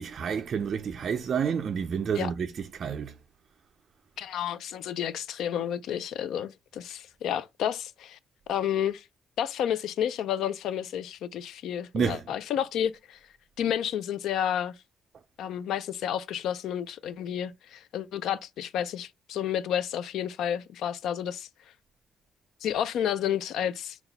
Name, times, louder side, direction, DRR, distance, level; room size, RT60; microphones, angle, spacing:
voice 1, 0.0-3.2 11.9-12.2, right 7 dB, 55° right, 0.3 m, -29 dB
voice 2, 4.2-8.2 8.5-9.0 9.4-13.2 13.6-14.8 15.4-21.5 22.6-24.0, left 9 dB, 80° left, 0.4 m, -31 dB
3.9 x 2.3 x 4.0 m
cardioid pair, 90°, 0 cm